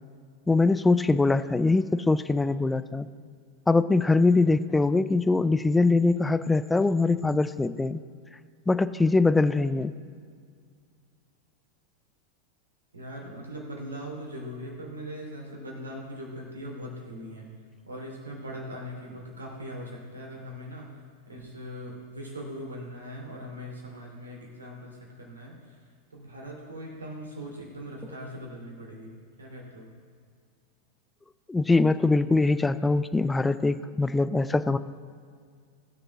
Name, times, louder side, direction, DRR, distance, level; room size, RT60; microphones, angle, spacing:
voice 1, 0.5-3.1 3.7-8.0 8.7-9.9 31.5-34.8, left 3 dB, 10° left, 13 dB, 0.4 m, -23 dB
voice 2, 12.9-17.5 17.9-20.9 21.3-25.5 26.1-29.1 29.4-29.9, equal, 75° right, -1 dB, 2.8 m, -40 dB
19.0 x 6.8 x 3.6 m, 2.1 s
figure-of-eight pair, 90°, 0 cm